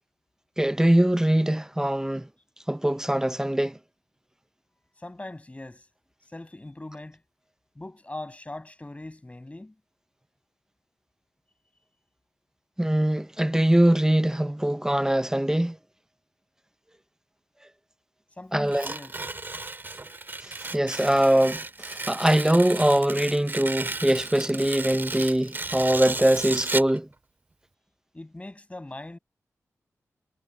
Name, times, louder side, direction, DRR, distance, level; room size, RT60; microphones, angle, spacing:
voice 1, 0.6-2.3 2.7-3.8 12.8-15.8 18.5-18.9 20.4-27.1, right 1 dB, 10° right, 0.7 m, -22 dB
voice 2, 5.0-5.9 6.3-7.2 7.8-9.7 18.4-19.2 28.1-29.2, left 2 dB, 25° left, 7.9 m, -40 dB
Tearing, 18.6-27.0, right 3 dB, 35° right, 2.6 m, -34 dB
cardioid pair, 55°, 6 cm